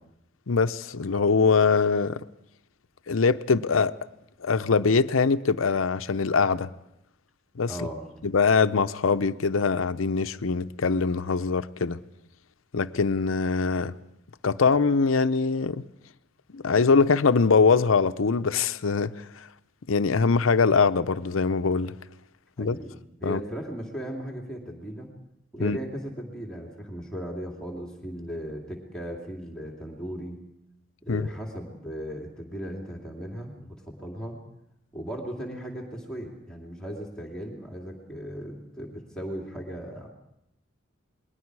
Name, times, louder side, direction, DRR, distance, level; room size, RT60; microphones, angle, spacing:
voice 1, 0.5-2.2 3.1-3.9 4.4-6.7 7.6-7.7 8.2-12.0 12.7-13.9 14.4-15.9 16.5-19.5 19.9-21.9 22.6-22.8 23.2-23.4 25.6-25.8 31.1-31.3, left 4 dB, 90° left, 0.7 m, -23 dB
voice 2, 7.7-8.1 22.6-25.1 25.5-30.4 31.0-34.4 34.9-40.1, equal, 5° left, 2.6 m, -37 dB
28.5 x 21.0 x 4.7 m
head